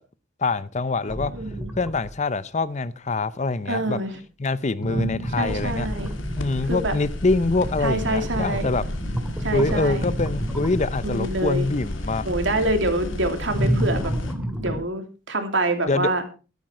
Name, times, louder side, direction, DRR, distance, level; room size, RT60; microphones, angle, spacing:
voice 1, 0.4-1.3 1.8-4.0 4.4-5.9 6.4-8.8 9.5-12.2 15.9-16.1, left 3 dB, 35° left, 0.6 m, -24 dB
sound 1, 1.1-2.1 4.8-11.1 13.5-14.8, equal, 5° right, 2.2 m, -29 dB
voice 2, 1.3-1.7 3.7-4.1 4.8-5.0 5.4-6.1 6.7-6.9 7.8-8.7 9.4-10.0 11.0-11.7 12.2-14.1 14.6-16.2, right 2 dB, 65° right, 2.9 m, -26 dB
sound 2, 5.4-14.3, left 1 dB, 80° left, 2.2 m, -33 dB
13.5 x 12.5 x 4.4 m
head